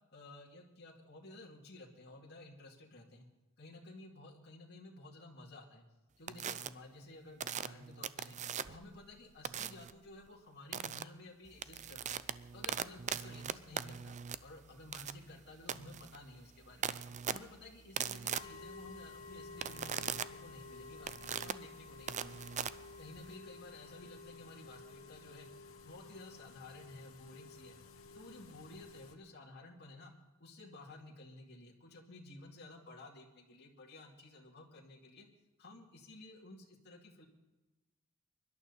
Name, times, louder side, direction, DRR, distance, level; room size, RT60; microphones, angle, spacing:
voice 1, 0.1-3.3 3.6-5.8 6.2-8.4 8.6-12.2 12.5-17.0 17.3-22.4 23.0-25.5 25.8-27.8 28.1-30.1 30.4-35.3 35.6-37.3, left 2 dB, 50° left, -2 dB, 2.4 m, -54 dB
sound 1, 6.3-6.7 7.4-8.9 9.4-9.9 10.7-11.0 11.5-23.4, right 8 dB, 35° right, 0.5 m, -40 dB
sound 2, 18.3-29.1, left 3 dB, 70° left, 1.4 m, -53 dB
24.0 x 12.0 x 4.1 m, 1.1 s
head